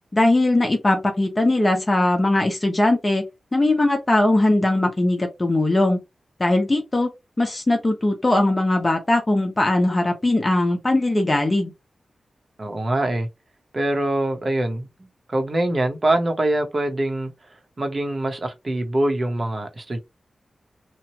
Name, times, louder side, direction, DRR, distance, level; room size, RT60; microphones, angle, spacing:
voice 1, 0.1-3.3 3.5-6.0 6.4-7.1 7.4-11.7, left 2 dB, 25° left, 0.8 m, -20 dB
voice 2, 12.6-13.3 13.7-17.3 17.8-20.0, right 1 dB, 35° right, 0.9 m, -24 dB
3.0 x 2.2 x 2.8 m
wide cardioid pair, 120°, 0 cm